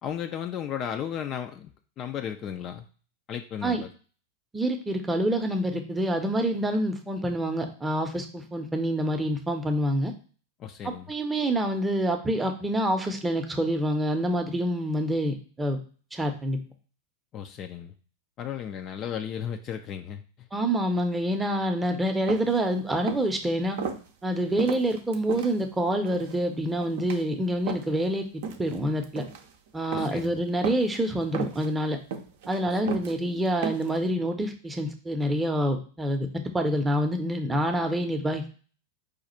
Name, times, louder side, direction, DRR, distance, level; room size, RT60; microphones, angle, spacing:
voice 1, 0.0-1.7 2.0-2.8 3.3-3.9 10.6-11.1 17.3-17.9 18.4-20.5 29.9-30.4 32.7-33.0, left 9 dB, 30° left, 6 dB, 0.3 m, -35 dB
voice 2, 4.5-10.1 10.8-15.8 16.1-16.6 20.5-23.8 24.2-28.3 28.6-29.2 29.7-32.0 32.5-38.5, right 1 dB, 10° right, 5 dB, 0.7 m, -27 dB
sound 1, 22.3-22.6 23.0-23.3 23.8-24.0 24.6-25.5 26.0-26.4 26.8-27.2 27.7-28.0 28.4-28.8 29.0-29.4 29.9-30.3 30.6-31.0 31.3-31.7 32.1-32.6 32.9-33.1 33.6-34.0, right 6 dB, 55° right, 0.5 m, -34 dB
5.0 x 2.4 x 4.2 m, 0.39 s
figure-of-eight pair, 90°, 0 cm